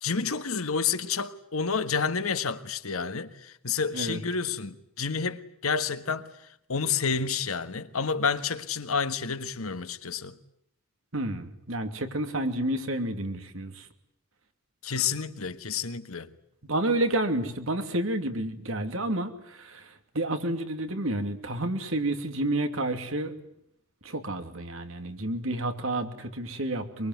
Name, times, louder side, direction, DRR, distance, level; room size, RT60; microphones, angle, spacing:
voice 1, 0.0-6.3 6.7-10.4 14.8-16.3, left 5 dB, 85° left, 1.6 m, -29 dB
voice 2, 11.1-13.9 16.6-23.3 24.0-27.1, right 1 dB, 65° right, 2.8 m, -30 dB
23.5 x 23.5 x 9.5 m
head